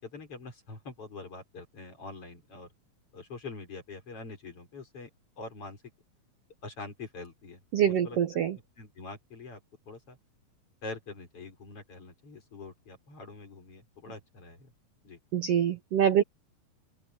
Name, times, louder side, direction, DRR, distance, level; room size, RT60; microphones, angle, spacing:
voice 1, 0.0-2.7 3.1-5.1 5.4-5.8 6.6-8.2 8.8-9.6 9.9-10.2 10.8-14.7 15.0-15.2, left 3 dB, 40° left, 5.9 m, -44 dB
voice 2, 7.7-8.6 15.3-16.2, right 9 dB, 65° right, 1.6 m, -25 dB
omnidirectional pair, 4.1 m